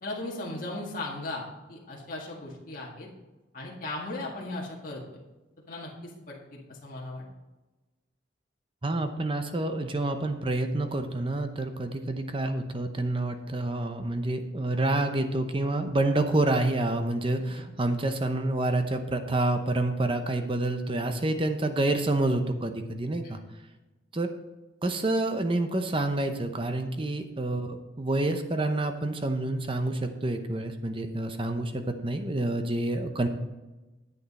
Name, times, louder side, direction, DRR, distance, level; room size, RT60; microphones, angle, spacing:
voice 1, 0.0-3.1 3.5-5.0 5.7-7.2 23.2-23.4, left 2 dB, 45° left, -4 dB, 1.8 m, -37 dB
voice 2, 8.8-23.4 24.1-24.3 24.8-33.3, right 2 dB, 30° right, 7 dB, 0.8 m, -28 dB
10.0 x 8.5 x 4.2 m, 1.1 s
head